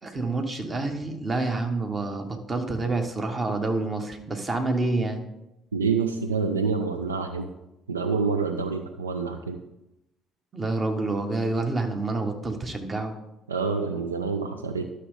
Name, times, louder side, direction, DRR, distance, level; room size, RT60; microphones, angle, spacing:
voice 1, 0.0-5.2 10.5-13.2, right 3 dB, 30° right, 5 dB, 1.3 m, -28 dB
voice 2, 5.7-7.5 7.9-9.6 13.5-14.9, right 5 dB, 80° right, 7 dB, 0.4 m, -27 dB
11.5 x 6.4 x 3.6 m, 0.92 s
figure-of-eight pair, 50°, 0 cm